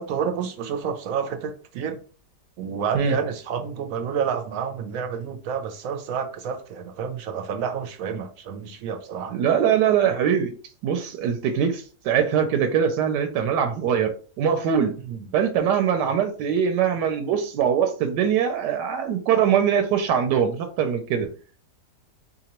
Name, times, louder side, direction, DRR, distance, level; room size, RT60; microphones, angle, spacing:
voice 1, 0.0-2.0 2.6-9.4 15.0-15.3, right 7 dB, 65° right, 0.9 m, -29 dB
voice 2, 9.3-10.6 10.8-14.9 15.3-21.3, right 8 dB, 85° right, 1.2 m, -22 dB
3.8 x 2.8 x 2.9 m
omnidirectional pair, 1.8 m